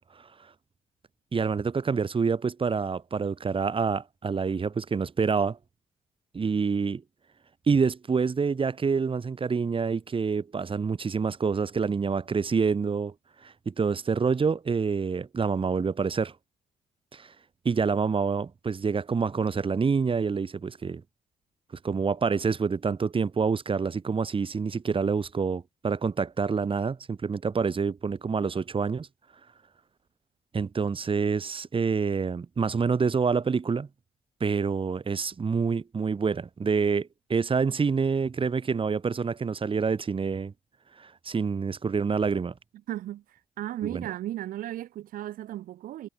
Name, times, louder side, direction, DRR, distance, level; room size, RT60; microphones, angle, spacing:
voice 1, 1.3-5.6 6.3-7.0 7.7-13.1 13.4-16.3 17.1-17.3 17.6-21.0 21.8-29.1 30.5-33.9 34.4-40.5 41.0-42.5 43.8-44.0, right 5 dB, 35° right, 1.5 m, -27 dB
voice 2, 42.9-43.2 43.6-46.1, right 13 dB, 75° right, 1.3 m, -35 dB
supercardioid pair, 50°, 15 cm